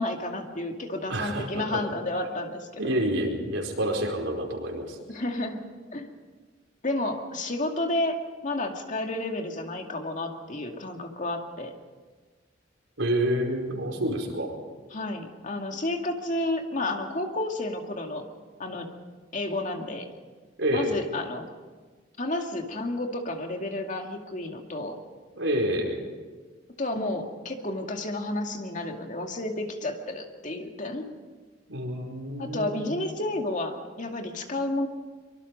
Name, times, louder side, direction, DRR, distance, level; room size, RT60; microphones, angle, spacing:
voice 1, 0.0-2.8 5.1-5.6 5.9-6.1 6.8-11.7 14.9-18.3 18.6-18.9 19.3-20.1 20.7-21.5 22.2-25.0 26.8-31.0 32.4-34.9, left 2 dB, 40° left, 3 dB, 2.3 m, -31 dB
voice 2, 1.1-1.8 2.8-5.0 13.0-14.5 20.6-20.9 25.3-26.0 31.7-32.9, right 1 dB, 85° right, 1 dB, 4.8 m, -28 dB
24.0 x 23.5 x 5.4 m, 1.4 s
head